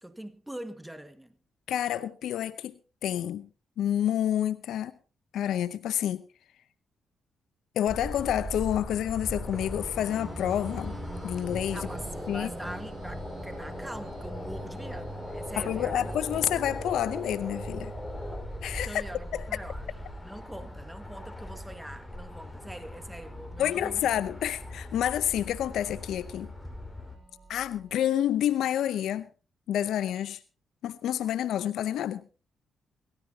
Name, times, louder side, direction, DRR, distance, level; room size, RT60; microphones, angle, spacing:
voice 1, 0.0-1.4 11.7-16.6 18.9-19.9 20.2-24.1, right 1 dB, 10° right, 1.8 m, -43 dB
voice 2, 1.7-2.7 3.0-3.5 3.8-4.9 5.3-6.2 7.8-11.0 11.2-11.8 12.3-12.5 15.6-17.9 18.6-19.0 23.6-26.5 27.5-29.3 29.7-30.4 30.8-32.2, left 11 dB, 80° left, 0.7 m, -28 dB
sound 1, 7.9-27.1, left 1 dB, 10° left, 4.8 m, -39 dB
sound 2, 9.4-28.0, right 4 dB, 55° right, 5.9 m, -50 dB
24.0 x 14.0 x 2.8 m
cardioid pair, 70°, 0 cm